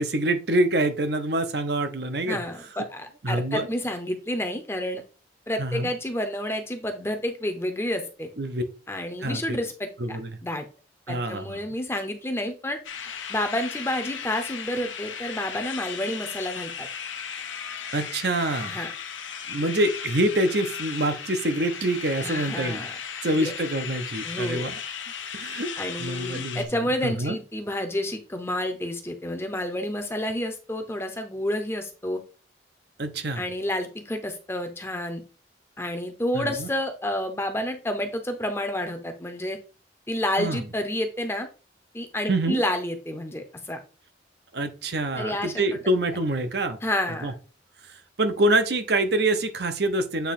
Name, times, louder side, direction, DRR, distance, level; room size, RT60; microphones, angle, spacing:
voice 1, 0.0-2.4 3.2-3.7 5.6-5.9 8.4-8.6 9.2-9.6 10.0-10.4 11.1-11.6 17.9-18.7 19.5-22.9 23.2-24.7 25.3-25.7 26.0-26.6 27.0-27.4 33.0-33.4 36.3-36.7 40.4-40.6 42.3-42.6 44.5-46.8 47.2-47.3 48.2-50.3, right 1 dB, 60° right, 8 dB, 0.8 m, -26 dB
voice 2, 2.2-5.0 5.5-8.3 8.9-10.7 11.1-12.8 13.3-16.9 18.6-18.9 22.2-22.9 23.2-23.5 24.2-24.7 25.8-32.2 33.3-35.2 35.8-39.6 40.1-41.5 41.9-43.8 45.2-45.8 46.8-47.3, left 1 dB, 15° left, 6 dB, 0.8 m, -30 dB
sound 1, 12.8-26.6, left 7 dB, 85° left, 1.0 m, -36 dB
8.1 x 3.0 x 4.2 m, 0.35 s
head